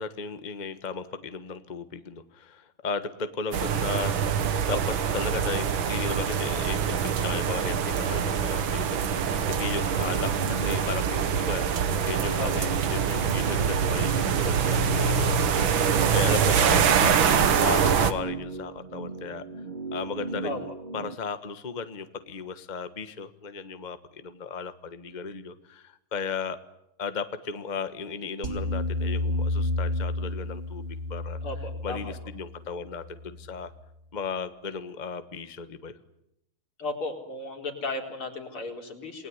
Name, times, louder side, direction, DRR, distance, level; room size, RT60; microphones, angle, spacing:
voice 1, 0.0-4.1 4.7-4.8 5.1-19.5 19.9-20.7 20.9-26.6 27.0-30.8 31.1-31.4 31.8-33.7 34.1-36.0, left 5 dB, 25° left, 10 dB, 1.3 m, -35 dB
sound 1, 3.5-18.1, right 7 dB, 70° right, 2.2 m, -24 dB
sound 2, 8.6-21.2, right 3 dB, 30° right, 1.1 m, -38 dB
sound 3, 28.4-33.7, left 2 dB, 50° right, 4.5 m, -31 dB
voice 2, 31.4-32.1 36.8-39.3, left 2 dB, 90° left, 3 dB, 5.0 m, -34 dB
28.5 x 20.0 x 9.7 m, 0.82 s
omnidirectional pair, 2.3 m